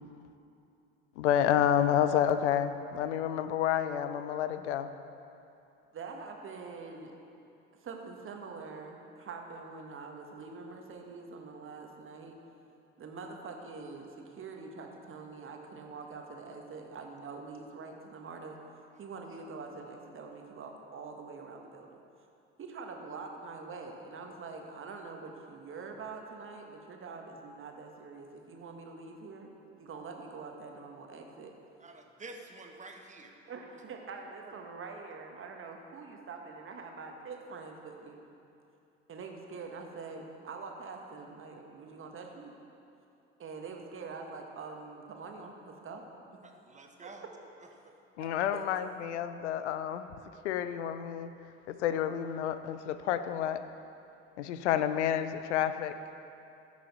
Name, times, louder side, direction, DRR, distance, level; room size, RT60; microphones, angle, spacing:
voice 1, 1.2-4.9 48.2-50.1 50.4-51.3 51.7-53.7 54.4-56.0, left 10 dB, 75° left, 11 dB, 0.6 m, -29 dB
voice 2, 5.9-7.1 7.8-12.3 13.0-18.6 19.0-22.0 22.6-29.5 29.8-31.5 33.5-38.2 39.1-42.5 43.4-46.1 47.0-47.1 48.2-48.6, right 4 dB, 35° right, 2 dB, 1.4 m, -45 dB
voice 3, 31.8-33.4 34.4-34.5 46.4-47.2, right 3 dB, 20° right, 3 dB, 1.3 m, -49 dB
15.0 x 6.3 x 4.3 m, 2.7 s
figure-of-eight pair, 60°, 35 cm